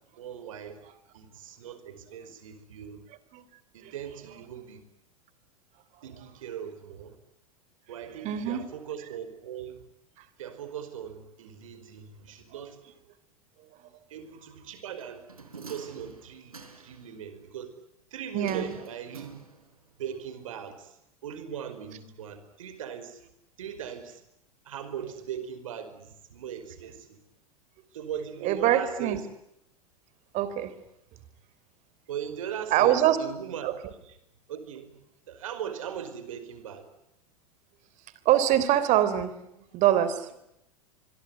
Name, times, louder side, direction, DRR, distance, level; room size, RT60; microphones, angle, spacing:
voice 1, 0.2-0.8 1.1-3.0 3.7-4.8 6.0-7.2 7.9-9.8 10.4-13.1 13.8-15.2 15.5-17.7 18.1-19.3 20.0-23.2 23.6-24.2 24.6-27.2 27.9-29.2 32.1-34.2 34.5-35.0 35.3-36.9, right 8 dB, 65° right, 11 dB, 5.1 m, -39 dB
voice 2, 8.2-8.6 18.3-18.7 28.4-29.2 30.3-30.7 32.7-33.2 33.6-33.7 38.2-39.3 39.7-40.3, right 12 dB, 40° right, 13 dB, 3.5 m, -24 dB
sound 1, 15.0-17.1 18.4-19.9 20.2-20.3, right 4 dB, 80° right, 4.1 m, -47 dB
25.5 x 22.5 x 9.7 m, 0.80 s
figure-of-eight pair, 90°, 19 cm